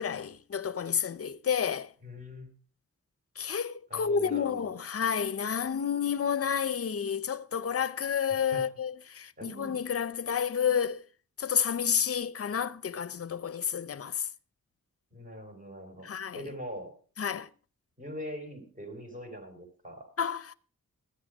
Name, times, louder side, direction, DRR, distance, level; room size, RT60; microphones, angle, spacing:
voice 1, 0.0-1.9 3.4-11.0 11.4-14.3 16.0-16.4 17.2-17.5 20.2-20.6, left 7 dB, 50° left, 0.6 m, -30 dB
voice 2, 2.0-2.5 3.9-4.8 8.3-8.7 9.4-9.8 15.1-16.1 16.3-17.0 18.0-20.1, equal, 25° right, 4.1 m, -42 dB
14.0 x 10.0 x 5.0 m
wide cardioid pair, 135°, 31 cm